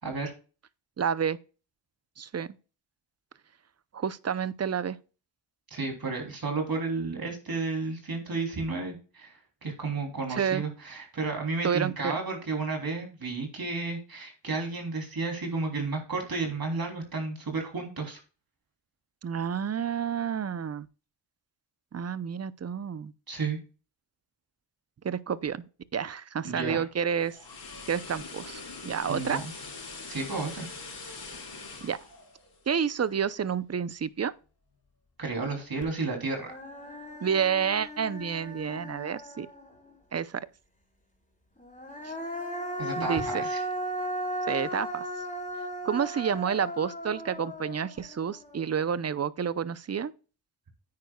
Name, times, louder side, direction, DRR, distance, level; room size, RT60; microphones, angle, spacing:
voice 1, 0.0-0.3 5.7-18.2 23.3-23.6 26.4-26.9 29.1-29.4 30.1-30.7 35.2-36.6 42.8-43.6, right 3 dB, 50° right, 3.2 m, -32 dB
voice 2, 1.0-1.4 2.2-2.5 3.9-5.0 10.3-10.6 11.6-12.1 19.2-20.9 21.9-23.1 25.0-25.6 25.9-27.4 27.9-29.4 31.8-32.0 32.7-34.3 37.2-39.5 40.1-40.4 42.0-42.1 43.0-43.5 44.5-45.1 45.8-50.1, right 7 dB, 35° right, 0.6 m, -29 dB
sound 1, 27.0-33.2 33.6-33.8, left 4 dB, 60° left, 5.2 m, -43 dB
Human voice, 35.8-35.9 36.3-39.9 41.6-48.8, equal, 15° left, 4.3 m, -36 dB
9.6 x 9.2 x 2.3 m
cardioid pair, 60°, 44 cm